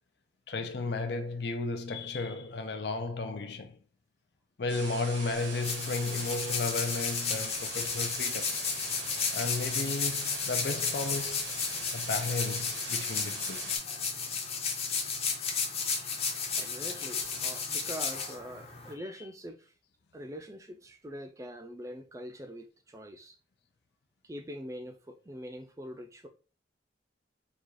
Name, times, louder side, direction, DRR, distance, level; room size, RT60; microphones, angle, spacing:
voice 1, 0.5-3.8 4.6-8.6 9.3-11.5 11.9-13.7 15.8-16.1, left 3 dB, 60° left, 0.5 m, -34 dB
sound 1, 4.7-13.8, right 4 dB, 85° right, 1.3 m, -42 dB
sound 2, 5.3-18.9, left 5 dB, 35° left, 0.8 m, -33 dB
voice 2, 16.6-19.7 20.1-23.4 24.2-26.3, equal, 15° right, 0.4 m, -43 dB
4.1 x 2.3 x 4.7 m
head